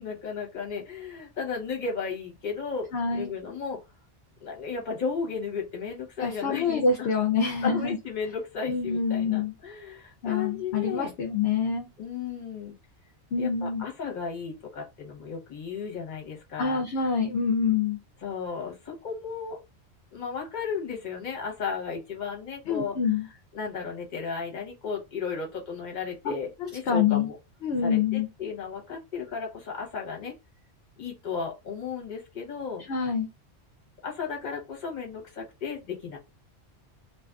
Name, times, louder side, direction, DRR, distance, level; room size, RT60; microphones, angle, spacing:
voice 1, 0.0-3.8 4.4-7.1 7.6-11.1 12.0-12.7 13.4-16.8 18.2-19.6 20.1-23.0 23.5-27.4 27.8-30.3 31.0-32.9 34.0-36.2, left 5 dB, 40° left, 0 dB, 1.0 m, -34 dB
voice 2, 2.9-3.3 6.2-8.0 8.7-9.5 10.2-11.9 13.3-13.9 16.6-18.0 22.7-23.3 26.2-26.3 26.9-27.3 27.6-28.3 32.9-33.3, left 5 dB, 65° left, 4 dB, 0.8 m, -26 dB
2.8 x 2.4 x 2.3 m, 0.24 s
omnidirectional pair, 1.2 m